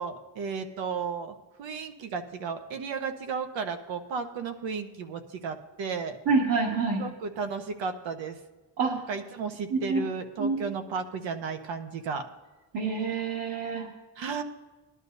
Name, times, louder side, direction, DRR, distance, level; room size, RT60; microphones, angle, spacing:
voice 1, 0.0-6.2 7.0-8.4 8.9-12.2 14.2-14.4, right 5 dB, 75° right, 6 dB, 1.2 m, -34 dB
voice 2, 6.3-7.1 8.8-9.0 9.7-10.0 10.4-10.6 12.7-13.9, right 4 dB, 55° right, -3 dB, 1.8 m, -27 dB
19.0 x 11.5 x 2.7 m, 1.2 s
cardioid pair, 150°, 45 cm